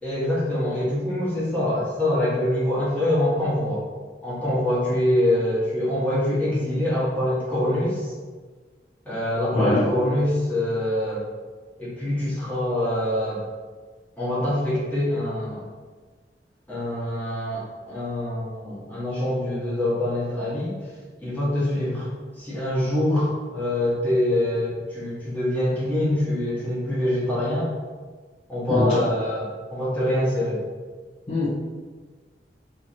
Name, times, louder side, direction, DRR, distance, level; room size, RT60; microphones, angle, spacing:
voice 1, 0.0-3.8 4.2-8.1 9.0-11.3 11.8-13.4 14.2-15.7 16.7-20.7 21.2-22.1 22.4-27.7 28.5-30.6, left 1 dB, 10° left, -10 dB, 1.1 m, -24 dB
voice 2, 28.7-29.0 31.3-31.5, left 1 dB, 35° left, -9 dB, 0.5 m, -22 dB
2.8 x 2.7 x 2.5 m, 1.4 s
head